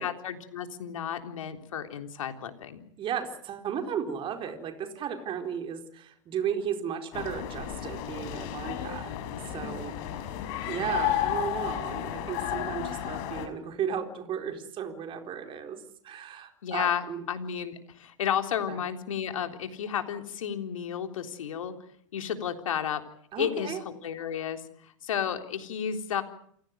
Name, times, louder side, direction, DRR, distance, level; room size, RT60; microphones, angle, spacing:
voice 1, 0.0-2.8 16.6-21.7 22.1-23.0 23.4-26.2, left 8 dB, 75° left, 6 dB, 3.7 m, -32 dB
voice 2, 3.0-9.2 9.5-10.0 10.2-10.4 10.7-17.2 18.7-18.8 23.3-23.8, right 8 dB, 30° right, 5 dB, 4.2 m, -35 dB
sound 1, 7.1-13.5, left 11 dB, 50° left, 5.1 m, -33 dB
28.5 x 17.0 x 9.3 m, 0.67 s
hypercardioid pair, 115°, 17 cm